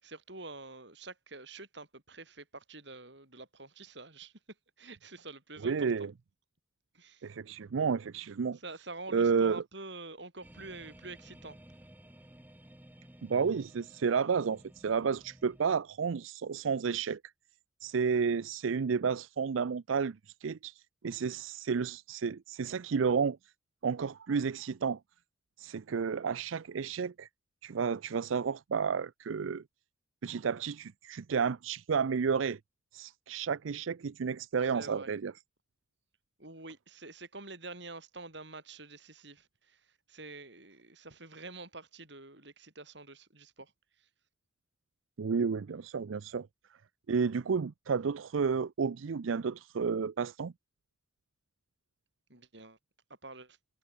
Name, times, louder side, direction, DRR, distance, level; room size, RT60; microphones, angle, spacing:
voice 1, 0.0-4.3 4.8-6.1 6.9-7.3 8.5-11.6 34.6-35.1 36.4-43.7 44.0-44.1 52.3-52.8 53.2-53.6, right 3 dB, 60° right, 6.6 m, -47 dB
voice 2, 5.6-6.1 7.2-8.6 9.1-9.6 13.2-17.2 17.8-23.4 23.8-25.0 25.6-27.3 27.6-29.6 30.2-32.6 32.9-35.3 45.2-46.5 47.1-50.5, right 5 dB, 85° right, 0.5 m, -31 dB
sound 1, 10.4-15.6, equal, 10° right, 1.6 m, -55 dB
head